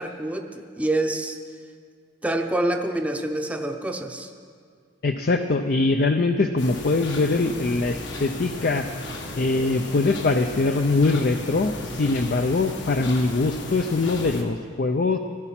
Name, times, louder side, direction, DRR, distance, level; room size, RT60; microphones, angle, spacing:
voice 1, 0.0-1.4 2.2-4.3, right 1 dB, 5° right, 4 dB, 0.7 m, -26 dB
voice 2, 5.0-8.9 9.4-15.2, left 3 dB, 50° left, 6 dB, 0.5 m, -22 dB
sound 1, 6.6-14.4, left 2 dB, 70° left, 1.4 m, -35 dB
15.5 x 11.0 x 5.8 m, 2.1 s
head